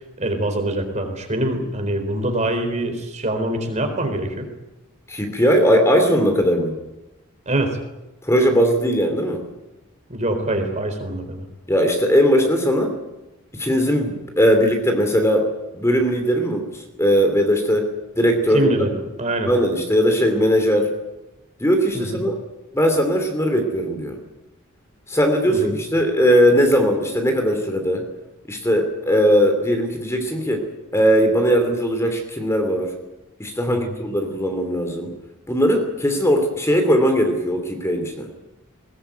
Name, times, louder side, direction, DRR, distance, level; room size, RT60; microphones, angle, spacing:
voice 1, 0.2-4.5 7.5-7.8 10.1-11.4 18.5-19.5 21.9-22.2 25.5-25.7 33.7-33.9, right 1 dB, 30° right, 6 dB, 4.3 m, -24 dB
voice 2, 5.1-6.8 8.2-9.5 11.7-13.0 13.5-15.5 15.7-17.9 18.2-18.7 19.5-20.9 21.6-22.4 22.7-24.2 25.1-28.1 28.5-30.7 30.9-32.9 33.4-35.1 35.5-38.3, equal, 10° left, 5 dB, 3.0 m, -19 dB
21.0 x 20.5 x 9.2 m, 1.0 s
head